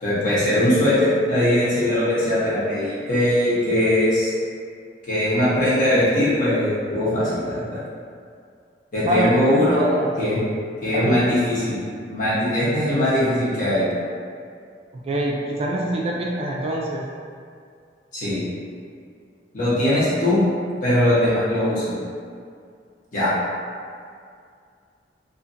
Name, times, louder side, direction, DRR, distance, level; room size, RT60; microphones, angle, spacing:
voice 1, 0.0-4.3 5.1-7.8 8.9-9.8 10.2-10.4 10.8-11.8 12.1-13.9 18.1-18.4 19.5-20.4 20.8-22.0 23.1-23.3, left 1 dB, 50° left, -10 dB, 1.0 m, -20 dB
voice 2, 9.1-10.2 10.9-11.4 15.0-17.0, right 1 dB, 35° right, -3 dB, 0.3 m, -25 dB
2.5 x 2.4 x 2.5 m, 2.2 s
head